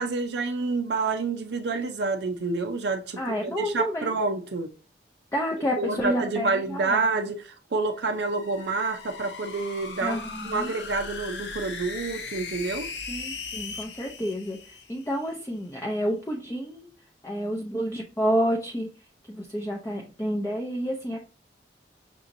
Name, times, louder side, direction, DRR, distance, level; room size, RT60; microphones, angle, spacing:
voice 1, 0.0-4.7 5.8-10.2 10.5-12.9, right 3 dB, 70° right, 0.5 m, -28 dB
voice 2, 3.2-4.2 5.3-7.0 10.0-10.7 13.1-21.2, equal, 15° left, 0.5 m, -30 dB
sound 1, 7.9-15.3, left 4 dB, 75° left, 0.7 m, -39 dB
5.9 x 2.8 x 2.6 m
head